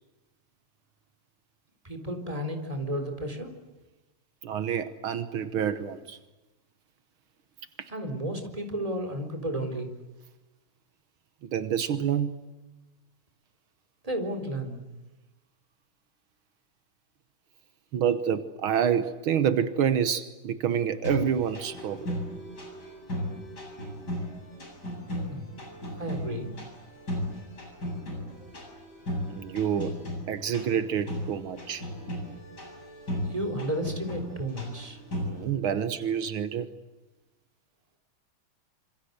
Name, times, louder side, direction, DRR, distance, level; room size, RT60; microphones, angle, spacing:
voice 1, 1.8-3.5 7.9-9.9 14.0-14.8 25.3-25.5 26.0-26.5 33.3-35.0, right 1 dB, 15° right, 5 dB, 4.0 m, -32 dB
voice 2, 4.4-6.2 7.8-7.9 11.5-12.4 17.9-22.1 29.3-29.9 30.3-31.8 35.2-36.7, right 8 dB, 80° right, 11 dB, 2.0 m, -28 dB
sound 1, 21.0-35.5, equal, 50° left, 8.4 m, -36 dB
27.0 x 26.5 x 8.1 m, 1.1 s
omnidirectional pair, 2.3 m